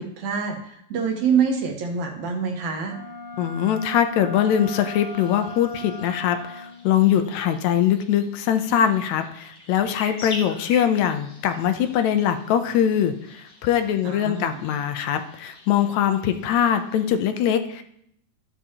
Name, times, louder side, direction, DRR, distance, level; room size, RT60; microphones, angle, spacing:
voice 1, 0.0-3.0 14.0-14.6, right 6 dB, 75° right, 3 dB, 2.5 m, -26 dB
Wind instrument woodwind instrument, 2.8-6.9, left 1 dB, 5° right, 1.7 m, -38 dB
voice 2, 3.4-17.8, left 9 dB, 80° left, 8 dB, 2.0 m, -22 dB
sound 1, 4.3-17.1, left 3 dB, 55° left, 1.0 m, -44 dB
13.5 x 6.9 x 2.9 m, 0.70 s
omnidirectional pair, 3.4 m